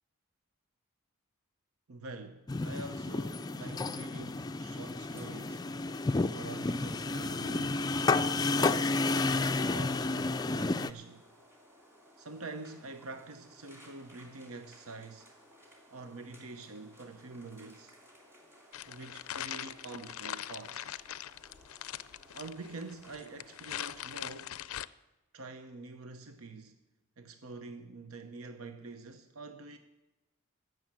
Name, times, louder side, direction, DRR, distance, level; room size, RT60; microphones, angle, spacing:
voice 1, 1.9-5.7 6.3-11.3 12.2-15.3 15.9-17.9 18.9-20.9 22.3-24.6 25.3-26.8 27.2-29.8, right 3 dB, 85° right, 0.8 m, -46 dB
sound 1, 2.5-10.9, left 3 dB, 20° left, 0.3 m, -31 dB
sound 2, 4.5-24.1, equal, 10° right, 2.7 m, -59 dB
sound 3, 18.7-24.9, left 12 dB, 80° left, 0.4 m, -42 dB
15.0 x 6.4 x 8.7 m
head